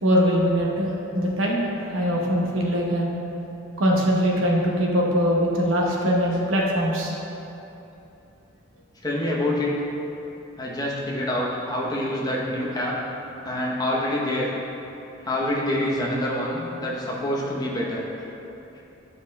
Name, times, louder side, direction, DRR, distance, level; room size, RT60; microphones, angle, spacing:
voice 1, 0.0-3.1 3.8-7.1, equal, 85° right, -2 dB, 1.0 m, -22 dB
voice 2, 9.0-9.7 10.6-12.9 13.4-14.5 15.2-18.0, left 1 dB, 20° left, -5 dB, 0.9 m, -26 dB
9.4 x 5.3 x 2.3 m, 3.0 s
head